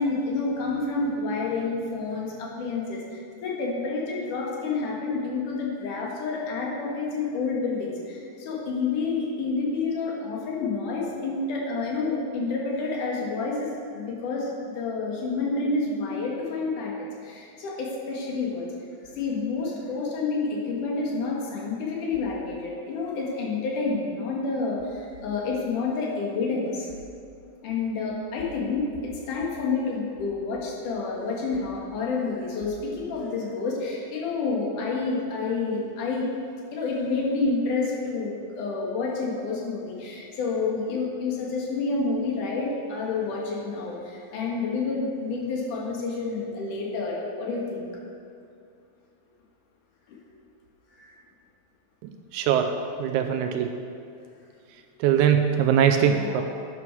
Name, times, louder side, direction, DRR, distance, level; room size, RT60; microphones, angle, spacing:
voice 1, 0.0-14.5 14.8-18.7 19.1-26.9 27.6-36.3 36.7-47.9 50.1-50.2 50.9-51.1 56.1-56.4, left 3 dB, 65° left, -3 dB, 3.2 m, -29 dB
voice 2, 52.0-53.8 55.0-56.4, right 8 dB, 85° right, 6 dB, 1.7 m, -22 dB
11.5 x 9.3 x 4.7 m, 2.4 s
omnidirectional pair, 4.0 m